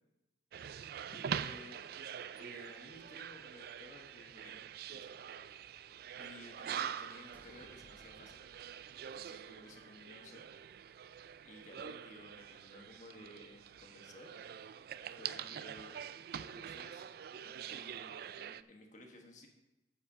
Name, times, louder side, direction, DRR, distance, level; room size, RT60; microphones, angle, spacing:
sound 1, 0.5-18.6, right 8 dB, 55° right, 0.3 m, -45 dB
voice 1, 1.1-1.8 2.3-5.2 6.2-8.4 9.1-10.4 11.4-14.3 15.2-16.0 16.3-17.1 17.3-19.5, left 1 dB, 45° left, 2 dB, 1.4 m, -55 dB
sound 2, 2.9-13.8, right 2 dB, 80° right, 2.2 m, -75 dB
sound 3, 7.3-9.9, equal, 10° left, 0.6 m, -64 dB
10.0 x 4.7 x 7.1 m, 0.97 s
head